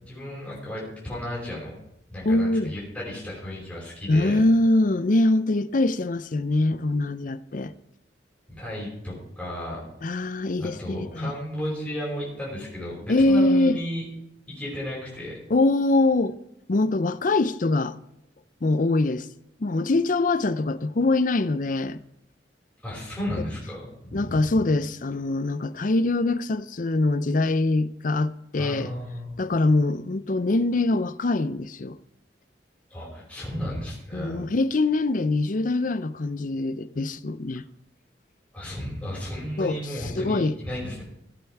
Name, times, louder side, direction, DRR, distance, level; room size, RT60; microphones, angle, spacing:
voice 1, 0.1-1.8 2.1-4.4 8.5-9.8 10.6-14.1 14.5-15.4 22.8-24.6 28.6-29.3 32.9-34.4 38.5-41.0, left 1 dB, 5° left, 5.3 m, -34 dB
voice 2, 2.2-2.7 4.1-7.7 10.0-11.3 13.1-13.8 15.5-16.4 16.7-18.0 18.6-19.3 19.6-22.0 24.1-28.9 29.4-32.0 34.1-37.6 39.6-39.8 40.2-40.5, left 2 dB, 45° left, 0.5 m, -23 dB
15.5 x 8.9 x 4.6 m
head